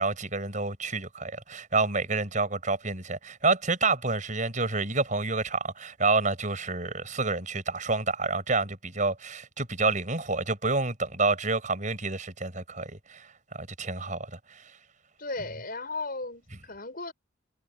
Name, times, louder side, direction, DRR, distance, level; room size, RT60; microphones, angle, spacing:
voice 1, 0.0-13.3 13.5-14.6, right 3 dB, 40° right, 7.1 m, -28 dB
voice 2, 15.2-17.1, left 3 dB, 50° left, 6.3 m, -36 dB
head